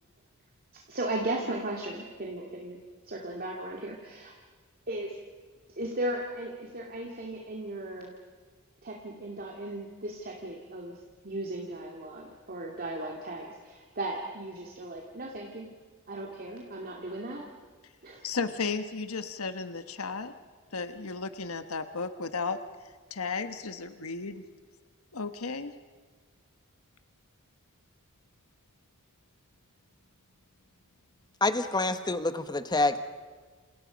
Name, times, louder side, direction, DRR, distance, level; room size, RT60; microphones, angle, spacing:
voice 1, 0.7-4.3 4.9-5.2 5.8-8.1 8.8-11.0 11.2-15.7 16.1-17.5 18.0-18.3, right 1 dB, 45° right, 0 dB, 2.6 m, -36 dB
voice 2, 18.2-20.3 20.7-22.6 23.1-24.4 25.1-25.7, left 4 dB, 80° left, 9 dB, 1.4 m, -34 dB
voice 3, 31.4-33.0, left 2 dB, 20° left, 10 dB, 1.2 m, -27 dB
29.5 x 28.0 x 5.3 m, 1.5 s
head